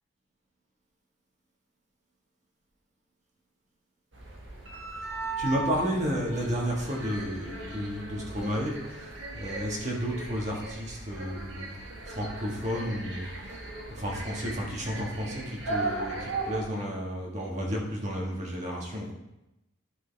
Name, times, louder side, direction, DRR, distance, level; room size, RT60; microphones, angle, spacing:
sound 1, 4.1-16.6, right 3 dB, 65° right, 1.7 m, -37 dB
voice 1, 5.4-11.7 12.1-13.6 13.9-19.1, equal, 35° right, -2 dB, 1.7 m, -32 dB
11.5 x 6.2 x 3.5 m, 0.92 s
head